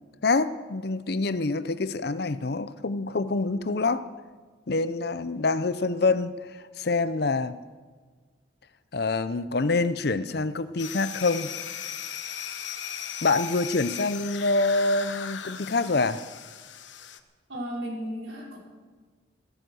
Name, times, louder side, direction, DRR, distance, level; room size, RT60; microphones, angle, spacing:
voice 1, 0.2-4.0 4.7-7.6 8.9-11.5 13.2-16.2, left 3 dB, 55° left, 14 dB, 0.6 m, -26 dB
sound 1, 10.8-17.2, left 8 dB, 70° left, 1.0 m, -37 dB
voice 2, 17.5-18.6, equal, 80° right, -3 dB, 5.1 m, -34 dB
16.0 x 13.5 x 6.4 m, 1.4 s
head